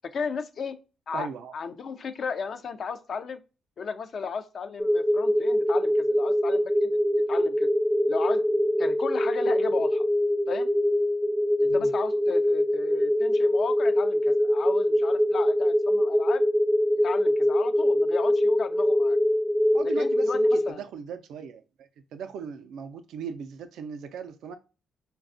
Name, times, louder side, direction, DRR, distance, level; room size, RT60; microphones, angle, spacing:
voice 1, 0.1-0.8 1.1-3.4 3.8-7.0 7.3-7.7 8.1-8.4 8.8-10.0 10.5-10.7 11.6-16.4 17.0-19.2 19.8-20.8, left 6 dB, 55° left, 0.4 m, -35 dB
voice 2, 1.1-1.5 11.7-11.9 19.7-21.6 22.1-24.6, right 7 dB, 75° right, 0.4 m, -38 dB
sound 1, 4.8-20.7, equal, 5° right, 0.4 m, -23 dB
4.0 x 2.2 x 2.5 m
cardioid pair, 75°, 0 cm